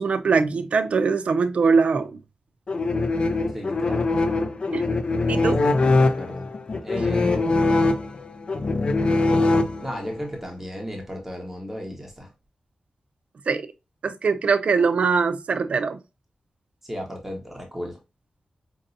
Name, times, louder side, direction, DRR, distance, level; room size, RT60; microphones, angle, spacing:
voice 1, 0.0-2.1 4.7-4.8 5.3-5.6 13.5-13.7 14.0-16.0, right 5 dB, 70° right, 0.5 m, -22 dB
sound 1, 2.7-10.2, left 2 dB, 50° left, 0.4 m, -22 dB
voice 2, 3.5-4.1 5.6-6.5 6.8-7.7 9.3-9.5 9.8-12.3 16.8-18.0, equal, 10° right, 1.1 m, -34 dB
5.2 x 2.6 x 2.6 m
wide cardioid pair, 105°, 2 cm